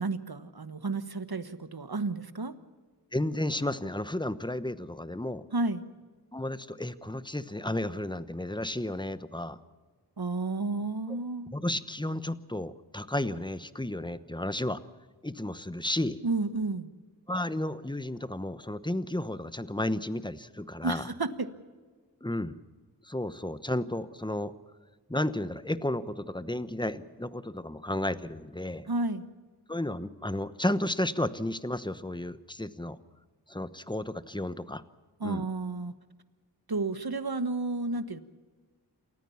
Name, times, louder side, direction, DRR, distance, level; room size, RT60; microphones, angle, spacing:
voice 1, 0.0-2.5 5.5-5.8 10.2-11.5 16.2-16.9 20.8-21.5 28.9-29.2 35.2-35.9 36.7-38.2, right 3 dB, 60° right, 12 dB, 1.3 m, -31 dB
voice 2, 3.1-5.4 6.3-9.6 11.5-14.8 15.2-16.2 17.3-21.1 22.2-22.6 23.0-24.5 25.1-28.9 29.7-33.0 33.5-34.8 35.2-35.5, left 1 dB, 10° left, 13 dB, 1.0 m, -32 dB
28.5 x 14.5 x 7.1 m, 1.4 s
wide cardioid pair, 45°, 41 cm